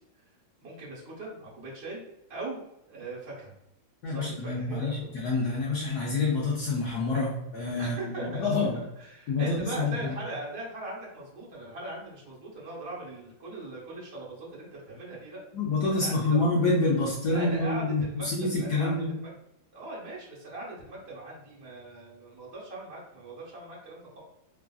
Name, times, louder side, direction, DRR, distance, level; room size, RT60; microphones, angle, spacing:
voice 1, 0.6-2.0 2.3-2.6 2.9-3.5 4.1-5.1 7.8-8.5 9.0-15.4 15.9-16.5 17.3-18.3 18.6-19.3 19.7-24.2, right 2 dB, 40° right, -6 dB, 1.0 m, -40 dB
voice 2, 4.0-8.8 9.3-10.1 15.5-19.1, left 3 dB, 75° left, -4 dB, 0.9 m, -27 dB
3.2 x 2.4 x 2.3 m, 0.82 s
omnidirectional pair, 2.3 m